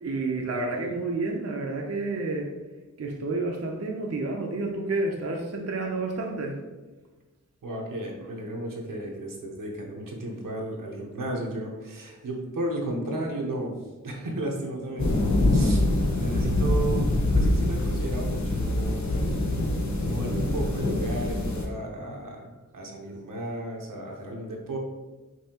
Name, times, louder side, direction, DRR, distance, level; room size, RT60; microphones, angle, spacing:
voice 1, 0.0-2.5 3.0-6.6, right 3 dB, 50° right, 1 dB, 0.6 m, -30 dB
voice 2, 7.6-13.7 14.0-15.2 15.5-15.8 16.2-19.3 20.0-24.8, right 1 dB, 90° right, -1 dB, 0.9 m, -34 dB
sound 1, 15.0-21.7, left 1 dB, 60° left, 0.8 m, -24 dB
5.4 x 2.8 x 2.9 m, 1.2 s
wide cardioid pair, 90°, 32 cm